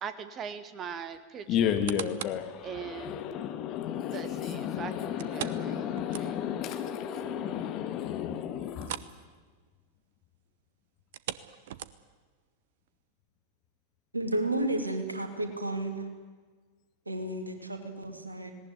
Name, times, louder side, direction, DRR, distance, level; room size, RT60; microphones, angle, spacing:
voice 1, 0.0-1.7 2.6-3.2 4.1-6.3, right 7 dB, 30° right, 12 dB, 1.7 m, -41 dB
voice 2, 1.5-8.9, left 9 dB, 35° left, 7 dB, 2.1 m, -32 dB
sound 1, 1.6-2.5 3.0-3.1 5.2-6.7 7.0-7.1 7.5-7.6 8.8-9.2 9.5-9.7 11.0-12.3 12.9-13.0, right 12 dB, 55° right, 0.9 m, -40 dB
voice 3, 14.1-16.1 17.1-18.5, right 1 dB, 80° right, 6 dB, 2.6 m, -32 dB
18.5 x 18.5 x 9.6 m, 1.4 s
figure-of-eight pair, 90°, 0 cm